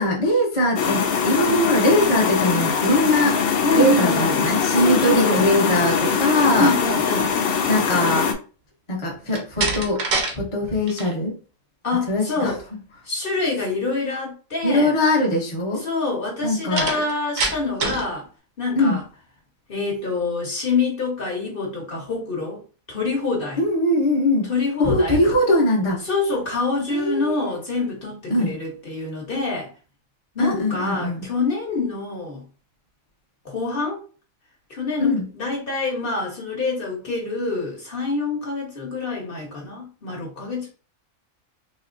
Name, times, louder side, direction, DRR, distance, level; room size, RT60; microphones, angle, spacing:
voice 1, 0.0-3.4 3.7-6.7 7.7-8.3 8.9-10.0 10.3-11.4 12.1-12.5 14.6-15.8 16.4-16.9 18.7-19.0 23.6-24.5 24.8-26.0 26.9-27.5 28.3-28.6 30.4-31.3 35.0-35.2, left 1 dB, 25° left, -3 dB, 1.0 m, -21 dB
sound 1, 0.8-8.3, left 6 dB, 60° left, 0.6 m, -22 dB
voice 2, 3.6-4.3 4.7-5.4 6.5-7.3 11.8-12.6 13.0-14.9 15.8-18.3 18.6-19.0 19.7-22.6 22.9-23.6 24.5-25.3 26.0-29.7 30.3-32.4 33.4-34.0 34.7-40.7, left 3 dB, 45° left, -3 dB, 1.3 m, -26 dB
Slam, 9.3-10.4 10.7-11.1 16.8-18.1, right 3 dB, 75° right, 1.2 m, -25 dB
4.2 x 2.8 x 2.6 m, 0.36 s
omnidirectional pair, 1.4 m